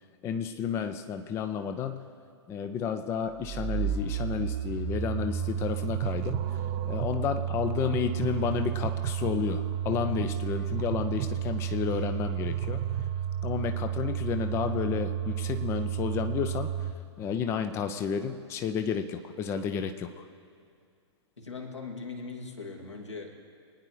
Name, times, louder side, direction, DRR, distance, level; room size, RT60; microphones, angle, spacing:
voice 1, 0.2-2.0 2.5-12.8 13.4-16.9 17.2-20.2, left 7 dB, 15° left, 8 dB, 0.5 m, -31 dB
sound 1, 3.3-16.9, right 9 dB, 30° right, 0.6 m, -31 dB
voice 2, 21.4-23.3, left 4 dB, 75° left, 0 dB, 2.4 m, -40 dB
25.0 x 9.7 x 3.3 m, 2.3 s
figure-of-eight pair, 110°, 15 cm